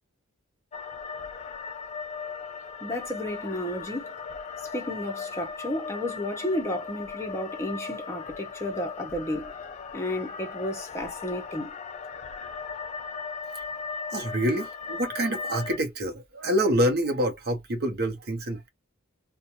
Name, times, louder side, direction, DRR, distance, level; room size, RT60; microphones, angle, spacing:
sound 1, 0.7-15.8, left 5 dB, 30° left, 0.3 m, -38 dB
voice 1, 2.8-4.1 4.6-9.5 9.9-11.7, left 1 dB, 15° left, 0.7 m, -32 dB
voice 2, 14.1-18.7, equal, 45° right, 0.7 m, -27 dB
2.4 x 2.1 x 2.9 m
head